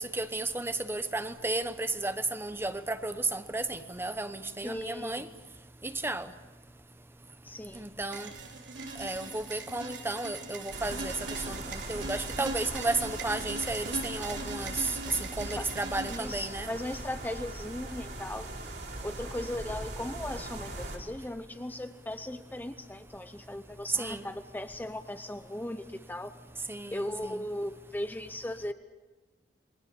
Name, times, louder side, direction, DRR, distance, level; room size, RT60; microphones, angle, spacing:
voice 1, 0.0-5.3 5.8-6.3 7.7-8.3 9.0-11.1 11.5-14.9 15.4-16.7 24.0-24.2 26.7-27.5, right 2 dB, 15° right, 11 dB, 1.0 m, -33 dB
voice 2, 4.6-5.2 7.4-7.8 15.5-15.6 16.1-18.5 19.0-26.3 26.9-28.7, left 1 dB, 10° left, 9 dB, 0.8 m, -37 dB
sound 1, 8.1-16.2, right 2 dB, 85° right, 3.4 m, -40 dB
sound 2, 10.7-21.0, right 2 dB, 65° right, 4.9 m, -40 dB
29.0 x 22.5 x 7.1 m, 1.2 s
head